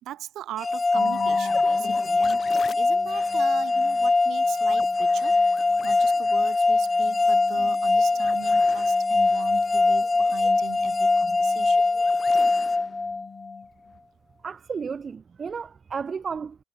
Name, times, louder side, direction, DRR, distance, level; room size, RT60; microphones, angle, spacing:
voice 1, 0.0-5.4 5.8-11.8, right 12 dB, 55° right, 2.2 m, -39 dB
sound 1, 0.6-13.6, left 3 dB, 20° left, 1.2 m, -22 dB
sound 2, 0.9-14.0, left 7 dB, 40° left, 1.2 m, -42 dB
voice 2, 14.4-16.6, right 6 dB, 35° right, 0.9 m, -33 dB
figure-of-eight pair, 55°, 0 cm